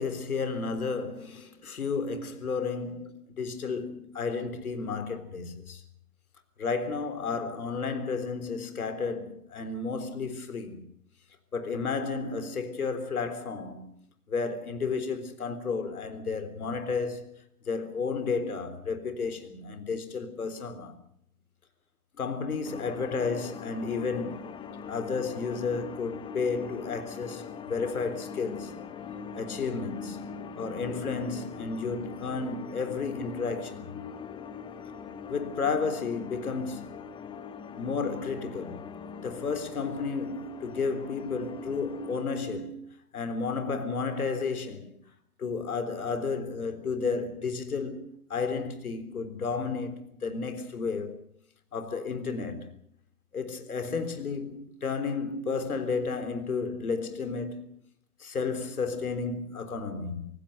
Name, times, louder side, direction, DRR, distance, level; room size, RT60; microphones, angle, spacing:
voice 1, 0.0-5.8 6.6-10.8 11.5-13.9 14.3-17.3 17.6-21.0 22.2-24.5 24.9-28.7 29.3-34.0 35.3-37.1 37.7-38.8 39.2-42.8 43.1-45.0 45.4-51.2 51.7-52.7 53.3-57.8 58.2-60.3, left 4 dB, 70° left, 3.8 m, -32 dB
sound 1, 22.6-42.3, left 6 dB, 10° left, 1.1 m, -42 dB
26.0 x 18.0 x 6.7 m
figure-of-eight pair, 125°, 45 cm